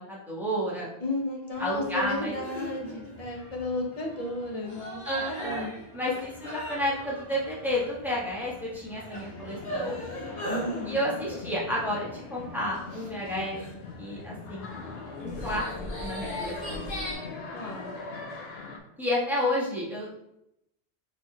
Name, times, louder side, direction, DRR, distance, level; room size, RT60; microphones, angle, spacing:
voice 1, 0.0-0.9 1.6-2.3 5.0-10.0 10.9-13.6 14.0-14.7 15.2-15.6 16.0-16.9 19.0-20.2, left 1 dB, ahead, -6 dB, 1.1 m, -31 dB
voice 2, 1.0-5.0 5.4-5.8 10.5-11.0 17.5-18.0, left 1 dB, 35° left, 0 dB, 0.9 m, -33 dB
sound 1, 1.5-17.1, equal, 55° left, 1.6 m, -40 dB
sound 2, 9.1-18.8, left 4 dB, 75° left, 0.9 m, -41 dB
4.3 x 3.3 x 3.2 m, 0.82 s
omnidirectional pair, 1.1 m